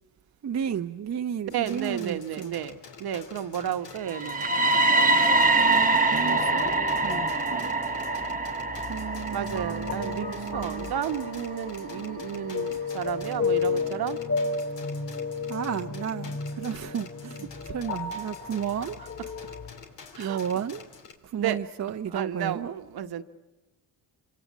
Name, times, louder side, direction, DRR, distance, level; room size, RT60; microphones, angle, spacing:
voice 1, 0.4-2.5 5.6-6.7 7.0-7.7 8.9-10.9 15.5-19.0 20.2-20.9 21.2-22.7, right 8 dB, 40° right, 0.8 m, -33 dB
sound 1, 1.5-21.1, left 5 dB, 80° left, 3.2 m, -48 dB
voice 2, 1.5-4.6 9.3-14.2 20.1-20.7 21.3-21.6 22.1-23.2, right 9 dB, 60° right, 1.3 m, -32 dB
sound 2, 4.1-12.0, right 2 dB, 20° right, 1.2 m, -25 dB
sound 3, 6.1-19.7, left 4 dB, 40° left, 5.9 m, -33 dB
26.0 x 26.0 x 7.5 m
supercardioid pair, 75°, 43 cm